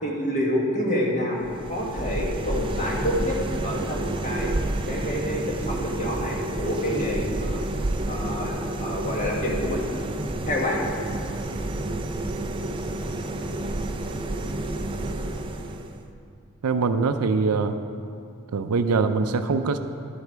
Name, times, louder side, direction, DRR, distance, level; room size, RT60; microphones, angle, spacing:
voice 1, 0.0-4.6 4.9-7.6 8.1-9.9 10.5-10.8, left 1 dB, 35° left, -2 dB, 1.5 m, -28 dB
sound 1, 1.4-16.1, right 2 dB, 20° right, 0.4 m, -30 dB
voice 2, 16.6-17.7 18.5-19.8, right 4 dB, 90° right, 8 dB, 0.5 m, -23 dB
11.5 x 8.1 x 4.6 m, 2.6 s
head